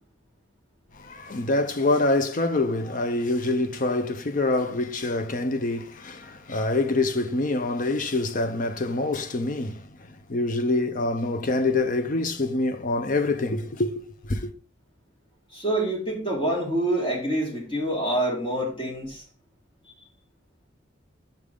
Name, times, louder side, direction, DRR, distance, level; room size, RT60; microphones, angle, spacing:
voice 1, 0.9-14.5, left 2 dB, 40° left, 0.6 m, -26 dB
voice 2, 15.5-19.2, right 1 dB, 25° left, 1.8 m, -26 dB
5.7 x 3.4 x 5.0 m
head